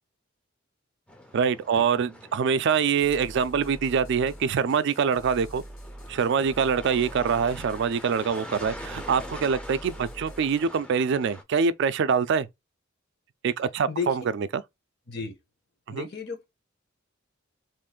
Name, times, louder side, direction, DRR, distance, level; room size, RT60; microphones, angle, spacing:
sound 1, 1.1-11.4, left 1 dB, 5° left, 0.5 m, -44 dB
voice 1, 1.3-5.6 6.1-12.5 13.4-14.1 14.5-14.6 15.9-16.1, right 6 dB, 60° right, 0.3 m, -24 dB
sound 2, 3.0-10.7, right 1 dB, 80° left, 1.4 m, -44 dB
voice 2, 13.9-14.2 15.1-15.3 15.9-16.5, left 5 dB, 55° left, 1.0 m, -33 dB
3.0 x 2.5 x 3.6 m
head